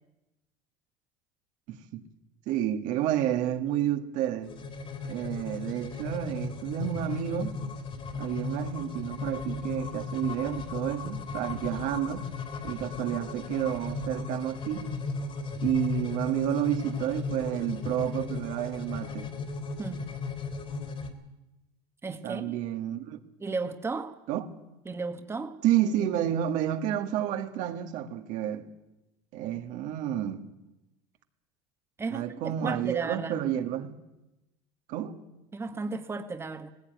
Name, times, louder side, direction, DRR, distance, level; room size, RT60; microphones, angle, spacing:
voice 1, 1.7-2.0 2.5-4.5 5.0-7.6 8.1-12.3 12.6-14.9 15.6-19.3 22.2-23.2 24.3-24.5 25.6-28.7 29.3-30.5 32.1-34.0 34.9-35.2, right 11 dB, 65° right, 1.9 m, -30 dB
sound 1, 4.4-21.1, left 4 dB, 40° left, 3.5 m, -36 dB
voice 2, 22.0-22.5 23.4-24.1 24.8-25.6 32.0-33.4 35.5-36.7, right 3 dB, 15° right, 1.5 m, -34 dB
18.0 x 16.5 x 9.4 m
supercardioid pair, 100°, 14 cm